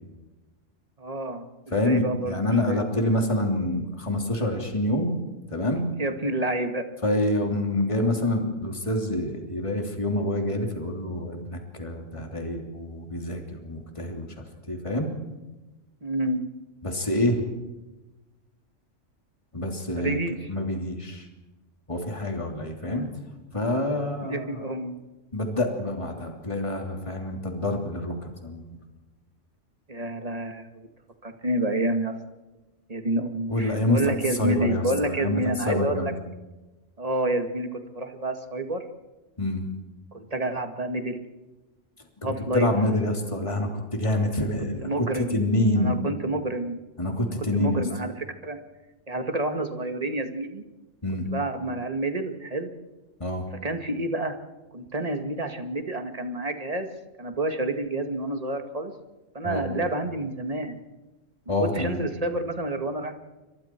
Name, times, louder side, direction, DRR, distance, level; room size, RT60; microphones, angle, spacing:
voice 1, 1.0-2.3 2.7-2.8 6.0-6.8 16.0-16.4 20.0-20.5 22.9-23.1 24.2-24.9 29.9-30.9 31.2-32.2 32.9-36.1 37.0-38.8 40.1-41.2 42.2-42.7 44.8-45.4 45.8-46.8 47.2-48.6 49.1-50.6 51.3-52.7 53.6-54.3 54.7-56.9 57.2-58.9 59.3-60.8 61.6-63.1, right 2 dB, 30° right, 6 dB, 2.0 m, -29 dB
voice 2, 1.7-5.1 5.5-5.9 7.0-14.3 14.7-15.1 16.8-17.4 19.5-20.2 20.5-21.2 21.9-23.0 23.5-24.6 25.3-28.6 33.5-34.1 34.4-35.4 35.6-36.1 39.4-39.7 42.2-45.1 45.3-46.0 47.0-47.8 51.0-51.3 53.2-53.4 59.4-59.7 61.5-62.0, left 1 dB, 25° left, 2 dB, 3.1 m, -27 dB
29.5 x 24.5 x 4.6 m, 1.1 s
omnidirectional pair, 1.3 m